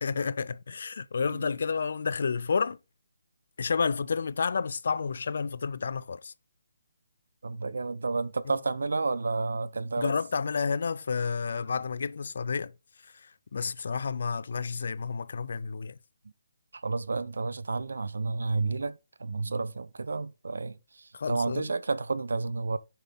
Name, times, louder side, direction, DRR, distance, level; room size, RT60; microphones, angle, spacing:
voice 1, 0.0-2.8 3.6-6.3 10.0-12.7 13.0-16.0 21.1-21.7, left 5 dB, 60° left, 0.5 m, -30 dB
voice 2, 7.4-10.1 16.7-22.8, right 3 dB, 80° right, 0.8 m, -31 dB
7.0 x 5.6 x 4.0 m
hypercardioid pair, 165°, 0 cm